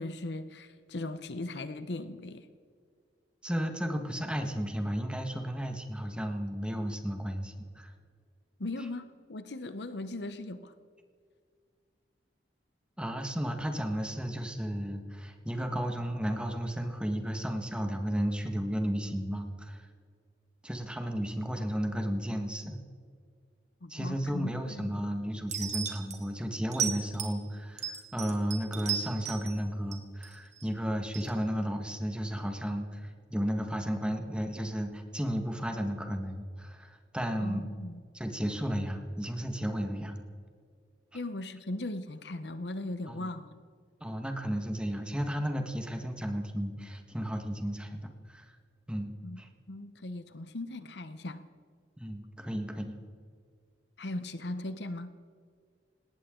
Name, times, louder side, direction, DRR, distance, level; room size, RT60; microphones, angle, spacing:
voice 1, 0.0-2.5 8.6-10.7 23.8-24.9 37.4-38.0 41.1-43.6 49.2-49.4 49.7-51.5 54.0-55.1, left 2 dB, 70° left, 11 dB, 0.9 m, -38 dB
voice 2, 3.4-7.9 13.0-19.9 20.6-22.8 23.9-37.6 38.1-40.2 43.1-43.3 44.0-48.6 48.9-49.5 52.0-53.0, equal, 5° right, 4 dB, 1.5 m, -33 dB
sound 1, 25.5-26.2 26.7-27.4 27.8-29.5 29.9-30.6 31.1-31.3, right 8 dB, 40° right, 2.2 m, -34 dB
19.5 x 18.0 x 3.8 m, 2.1 s
head